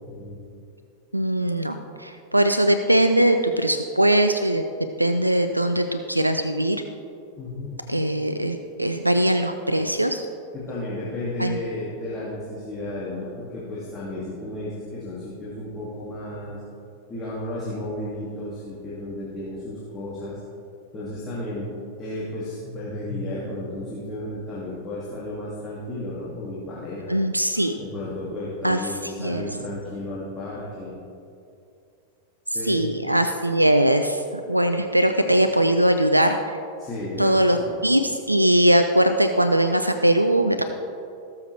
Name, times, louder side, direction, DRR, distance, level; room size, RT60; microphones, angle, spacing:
voice 1, 0.1-0.4 7.4-7.8 10.5-16.6 17.1-20.4 20.9-21.7 22.0-27.2 27.5-31.0 32.5-32.8 36.8-37.8, left 1 dB, 25° left, -7 dB, 2.3 m, -33 dB
voice 2, 1.1-4.6 5.0-6.8 7.9-10.3 11.4-11.6 27.1-27.8 28.6-29.5 32.5-36.6 37.2-40.6, right 1 dB, 85° right, 8 dB, 0.4 m, -21 dB
17.5 x 7.1 x 3.3 m, 2.5 s
figure-of-eight pair, 90°, 0 cm